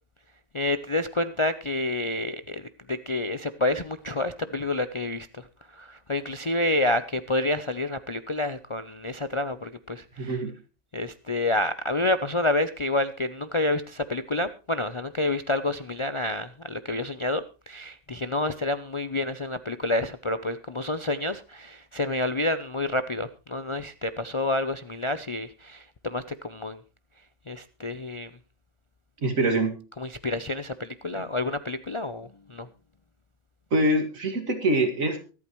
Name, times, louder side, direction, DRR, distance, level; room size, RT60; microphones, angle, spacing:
voice 1, 0.5-2.6 2.9-5.5 5.7-10.4 10.9-26.8 27.5-28.3 30.0-32.7, left 2 dB, 40° left, 11 dB, 0.4 m, -29 dB
voice 2, 10.2-10.5 29.2-29.8 31.1-31.2 33.7-35.2, right 1 dB, 80° right, 4 dB, 2.6 m, -24 dB
23.5 x 8.6 x 3.1 m, 0.33 s
omnidirectional pair, 1.4 m